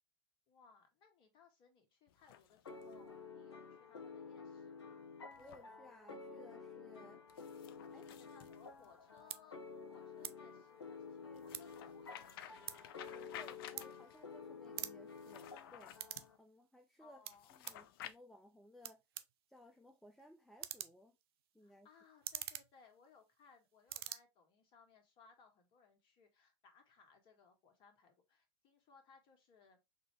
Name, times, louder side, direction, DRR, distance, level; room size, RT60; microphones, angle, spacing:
voice 1, 0.5-5.0 7.9-9.6 9.9-12.9 17.0-17.5 21.6-29.8, left 5 dB, 40° left, 1.6 m, -66 dB
sound 1, 2.1-3.1 5.3-5.6 7.3-9.2 11.3-14.2 15.1-16.3 17.3-18.2, left 11 dB, 60° left, 0.5 m, -54 dB
sound 2, 2.6-16.4, left 5 dB, 90° left, 0.9 m, -52 dB
voice 2, 5.4-7.2 7.9-8.1 11.2-11.5 13.1-16.0 16.4-17.2 17.5-19.0 19.5-21.1 21.5-21.9, equal, ahead, 0.5 m, -60 dB
sound 3, 8.8-8.9 9.2-9.4 10.2-10.4 10.7-11.9 12.2-14.4 14.6-16.3 16.6-17.9 18.5-18.6 18.8-23.5 23.8-24.2, right 12 dB, 65° right, 0.5 m, -47 dB
4.4 x 2.9 x 3.2 m
hypercardioid pair, 100°, 14 cm